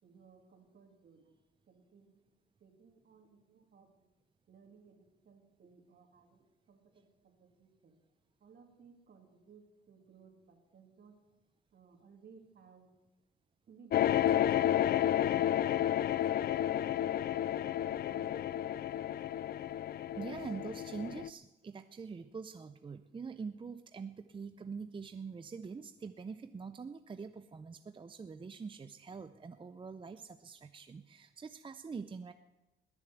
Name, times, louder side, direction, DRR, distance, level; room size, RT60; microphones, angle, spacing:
voice 1, 0.0-1.4 1.7-2.2 2.6-4.1 4.5-8.0 8.4-11.2 11.7-12.9 13.7-15.9 16.3-18.8 29.1-29.2, right 5 dB, 55° right, 4 dB, 2.9 m, -60 dB
sound 1, 13.9-21.3, left 11 dB, 50° left, 0.4 m, -31 dB
voice 2, 20.2-32.3, right 5 dB, 25° right, 10 dB, 0.6 m, -44 dB
20.5 x 7.1 x 7.9 m, 1.1 s
cardioid pair, 90°, 20 cm